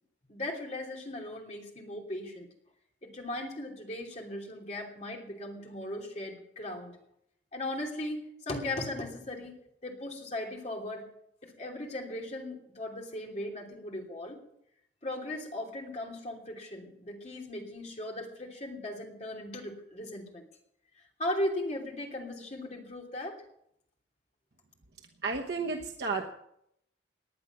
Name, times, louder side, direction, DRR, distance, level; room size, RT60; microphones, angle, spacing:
voice 1, 0.3-2.5 3.0-6.9 7.5-9.6 9.8-11.1 11.4-14.4 15.0-20.5 21.2-23.4, left 1 dB, 35° left, 1 dB, 3.0 m, -37 dB
voice 2, 25.2-26.3, right 4 dB, 60° right, 2 dB, 1.1 m, -32 dB
19.0 x 10.5 x 6.0 m, 0.75 s
head